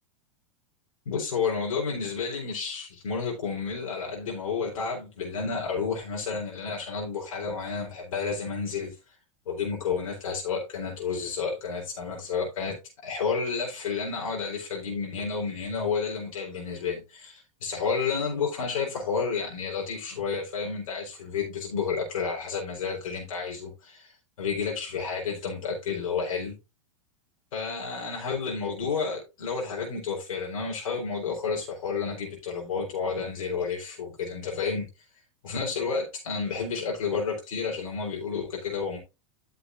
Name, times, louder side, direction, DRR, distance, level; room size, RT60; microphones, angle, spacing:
voice 1, 1.1-8.9 9.5-12.8 13.0-24.1 24.4-26.6 27.5-34.9 35.4-39.0, left 5 dB, 85° left, 4.1 m, -31 dB
13.0 x 6.9 x 2.6 m
hypercardioid pair, 125°, 17 cm